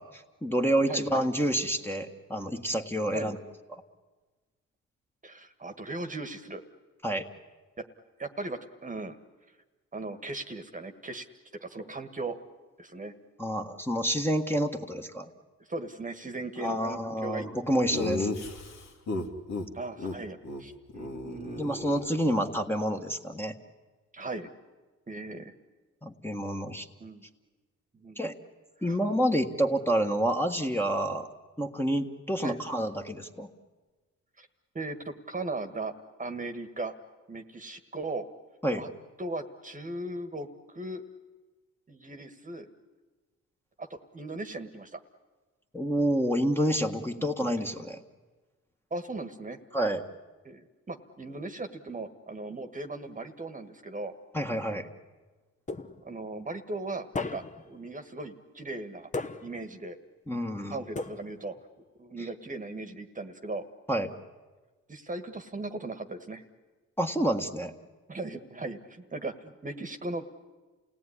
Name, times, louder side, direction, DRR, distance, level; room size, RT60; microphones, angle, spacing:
voice 1, 0.0-3.4 3.7-3.8 7.0-7.3 13.4-15.3 16.6-18.3 21.6-23.5 26.0-26.9 28.2-28.3 28.8-31.3 31.6-33.5 38.6-38.8 45.7-48.0 49.7-50.0 54.3-54.9 60.3-60.8 63.9-64.1 67.0-67.7, equal, 5° left, 3 dB, 1.6 m, -28 dB
voice 2, 5.2-6.6 7.8-7.9 8.2-9.2 9.9-11.3 11.6-12.4 12.8-13.1 15.7-17.5 17.8-18.1 19.7-21.7 24.1-24.5 25.1-25.5 27.0-27.3 27.9-28.2 28.8-29.0 32.4-32.6 34.4-34.5 34.7-35.9 36.2-36.9 37.3-38.3 38.7-38.9 39.2-41.0 41.9-42.7 43.8-45.0 47.2-47.3 48.9-49.6 50.4-54.1 56.0-59.1 59.4-60.0 60.7-61.6 62.0-63.6 64.9-66.4 68.1-70.3, right 2 dB, 25° right, 8 dB, 1.6 m, -38 dB
Laughter, 17.9-19.7 20.0-20.2 20.4-20.6 20.9-22.5, left 2 dB, 65° left, 2.5 m, -34 dB
sound 1, 55.7-56.3 57.1-57.8 59.1-59.8 61.0-61.6, left 3 dB, 25° left, 1.1 m, -36 dB
29.0 x 17.5 x 10.0 m, 1.3 s
cardioid pair, 90°, 30 cm